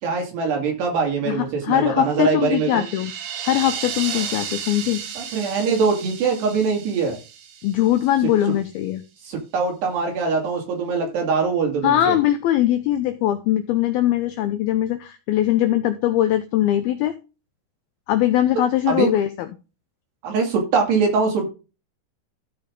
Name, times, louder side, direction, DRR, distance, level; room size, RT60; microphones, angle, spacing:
voice 1, 0.0-2.8 5.2-7.2 9.2-12.2 18.9-19.1 20.2-21.5, right 5 dB, 70° right, 1 dB, 4.6 m, -22 dB
voice 2, 1.6-3.1 3.4-5.0 7.6-9.0 11.8-17.2 18.1-19.3, left 12 dB, 80° left, 9 dB, 2.2 m, -21 dB
sound 1, 2.1-8.3, right 8 dB, 85° right, 4.0 m, -34 dB
14.0 x 5.2 x 3.7 m, 0.30 s
omnidirectional pair, 5.1 m